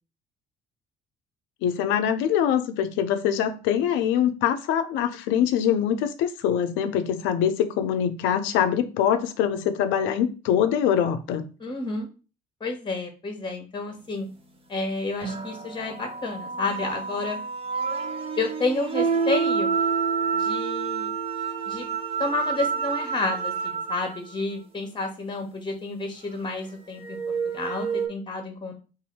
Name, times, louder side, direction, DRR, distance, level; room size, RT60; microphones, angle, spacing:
voice 1, 1.6-11.5, left 9 dB, 65° left, 0.6 m, -24 dB
voice 2, 11.6-12.1 12.6-14.3 14.7-17.4 18.4-19.7 20.3-21.1 21.7-21.9 22.2-27.2 27.5-28.7, left 3 dB, 20° left, 1.2 m, -30 dB
sound 1, 15.2-24.3 26.9-28.1, right 6 dB, 25° right, 0.9 m, -28 dB
2.7 x 2.6 x 4.2 m
hypercardioid pair, 50°, 21 cm